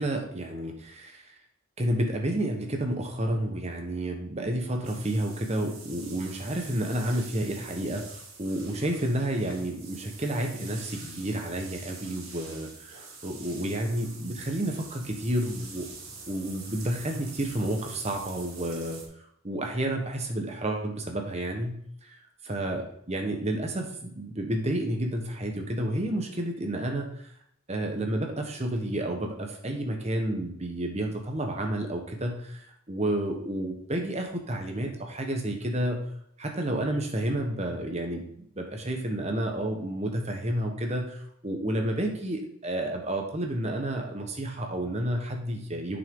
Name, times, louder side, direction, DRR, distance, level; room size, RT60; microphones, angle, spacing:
voice 1, 0.0-1.3 1.8-15.9 16.3-19.0 19.4-22.2 22.4-27.2 27.7-36.0 36.4-46.0, right 1 dB, 30° right, 3 dB, 1.2 m, -30 dB
sound 1, 4.8-19.0, right 4 dB, 70° right, 2.4 m, -46 dB
8.2 x 6.3 x 3.8 m, 0.70 s
head